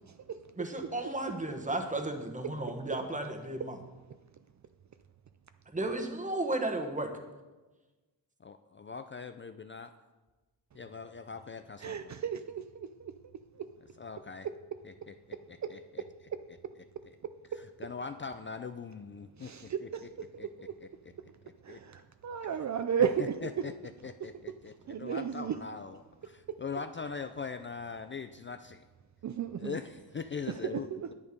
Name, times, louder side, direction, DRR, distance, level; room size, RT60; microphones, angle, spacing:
voice 1, 0.5-3.8 5.7-7.1, right 2 dB, 20° right, 5 dB, 1.2 m, -34 dB
voice 2, 8.4-9.9 10.7-12.2 14.0-14.5 14.8-15.1 15.5-16.0 17.5-20.1 20.4-20.9 21.7-21.8 23.0-28.8 29.6-31.1, left 5 dB, 30° left, 9 dB, 0.4 m, -42 dB
voice 3, 11.8-13.1 13.6-13.7 14.4-14.5 15.6-15.7 16.3-16.4 19.4-20.7 21.6-23.5 24.9-25.5 26.5-26.6 29.2-29.8 30.5-31.1, right 8 dB, 45° right, 9 dB, 0.5 m, -34 dB
9.7 x 8.6 x 5.2 m, 1.2 s
wide cardioid pair, 120°, 39 cm